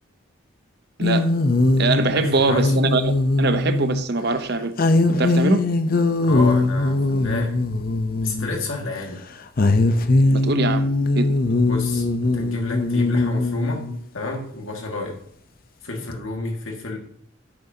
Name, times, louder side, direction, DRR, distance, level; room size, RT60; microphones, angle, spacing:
sound 1, 1.0-4.1 4.8-8.8 9.6-14.0 16.1-16.2, left 2 dB, 45° left, 0.6 m, -20 dB
voice 1, 1.0-1.3 1.8-3.1 3.4-4.7 5.2-5.6 10.3-10.9 11.2-11.4, right 3 dB, 55° right, 11 dB, 0.8 m, -22 dB
voice 2, 2.1-2.8 6.2-7.6 8.2-9.2 11.7-13.8 14.1-15.2 15.8-17.0, left 2 dB, 85° left, 1 dB, 1.9 m, -30 dB
10.5 x 8.7 x 2.8 m, 0.66 s
head